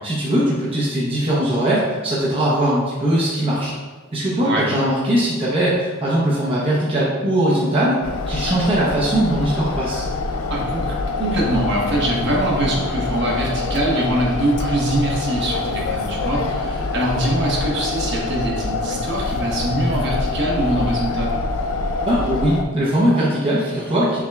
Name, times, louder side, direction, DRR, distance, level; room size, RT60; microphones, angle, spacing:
voice 1, 0.0-3.7 4.1-10.0 22.0-24.2, right 1 dB, 25° right, -7 dB, 0.7 m, -20 dB
sound 1, 8.0-22.6, left 3 dB, 75° left, 0.4 m, -25 dB
voice 2, 10.5-21.3, right 1 dB, 55° right, -3 dB, 0.9 m, -23 dB
5.8 x 3.5 x 2.3 m, 1.3 s
head